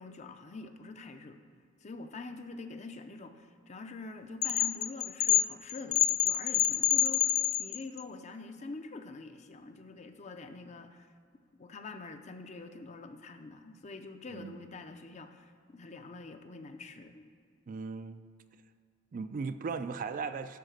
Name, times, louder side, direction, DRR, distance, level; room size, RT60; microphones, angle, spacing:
voice 1, 0.0-1.4 1.8-11.1 11.6-17.3, left 3 dB, 35° left, 7 dB, 0.5 m, -45 dB
sound 1, 4.4-8.0, left 12 dB, 90° left, 0.4 m, -27 dB
voice 2, 14.3-14.7 17.7-18.2 19.1-20.6, right 5 dB, 40° right, 11 dB, 0.3 m, -37 dB
11.5 x 3.9 x 6.4 m, 2.2 s
head